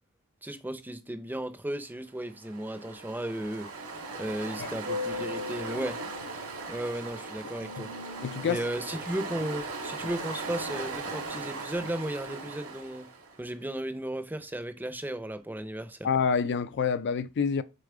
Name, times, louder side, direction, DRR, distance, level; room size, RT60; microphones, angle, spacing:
voice 1, 0.4-3.7 4.2-6.0 6.7-7.9 8.4-13.1 13.4-16.1, right 1 dB, 10° right, 0.6 m, -35 dB
Ocean, 2.3-13.4, right 2 dB, 80° right, 2.2 m, -37 dB
voice 2, 8.2-8.6 16.0-17.6, left 6 dB, 55° left, 0.4 m, -27 dB
6.8 x 4.0 x 3.8 m
head